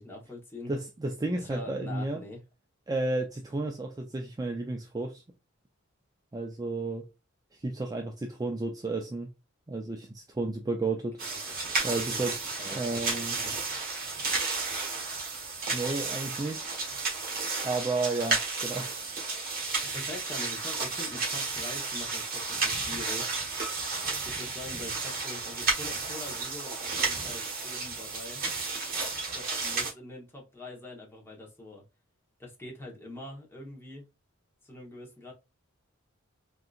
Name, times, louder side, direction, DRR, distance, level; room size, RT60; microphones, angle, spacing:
voice 1, 0.0-0.7 1.4-2.4 11.3-11.7 12.1-13.5 19.9-23.4 24.3-28.4 29.3-31.8 32.4-34.1 34.6-35.3, left 2 dB, 10° left, 1.0 m, -44 dB
voice 2, 0.7-2.2 2.9-5.2 6.3-7.1 7.6-9.3 9.7-11.2 11.8-12.4 12.7-13.4 15.7-16.7 17.6-18.9, right 2 dB, 20° right, 0.4 m, -32 dB
sound 1, 11.2-29.9, right 4 dB, 45° right, 1.3 m, -32 dB
3.8 x 2.7 x 2.4 m
head